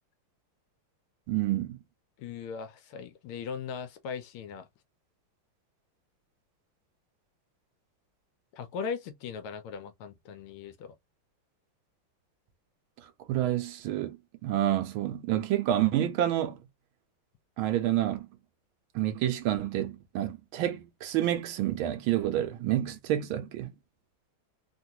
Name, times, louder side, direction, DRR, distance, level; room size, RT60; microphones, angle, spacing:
voice 1, 1.3-1.8 13.3-14.2 14.4-16.6 17.6-18.3 18.9-23.7, right 13 dB, 80° right, 1.4 m, -28 dB
voice 2, 2.2-4.7 8.5-10.9, left 6 dB, 85° left, 1.5 m, -39 dB
3.7 x 2.4 x 2.7 m
omnidirectional pair, 2.3 m